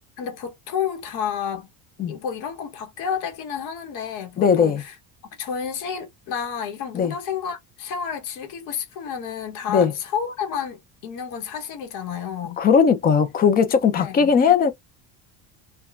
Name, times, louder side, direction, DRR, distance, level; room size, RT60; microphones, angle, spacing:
voice 1, 0.2-1.7 2.1-4.9 5.4-12.6 14.0-14.3, left 7 dB, 60° left, 1.0 m, -30 dB
voice 2, 4.4-4.8 6.9-7.1 9.7-9.9 12.6-14.7, left 6 dB, 25° left, 0.5 m, -18 dB
2.9 x 2.2 x 2.3 m
cardioid pair, 150°, 36 cm